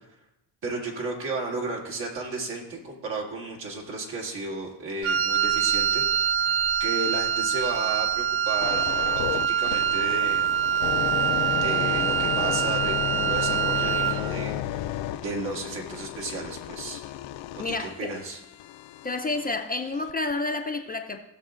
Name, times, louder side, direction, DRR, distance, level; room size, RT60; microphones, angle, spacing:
voice 1, 0.6-10.5 11.5-14.9 15.2-17.0 17.6-18.4, right 3 dB, 70° right, -2 dB, 2.4 m, -34 dB
Wind instrument woodwind instrument, 5.0-14.3, right 8 dB, 90° right, 0.7 m, -25 dB
sound 1, 8.6-19.5 20.1-20.3, left 12 dB, 70° left, 0.5 m, -33 dB
voice 2, 17.6-18.1 19.0-21.2, left 3 dB, 20° left, 4 dB, 0.5 m, -29 dB
16.5 x 6.6 x 2.5 m, 0.92 s
cardioid pair, 95°, 47 cm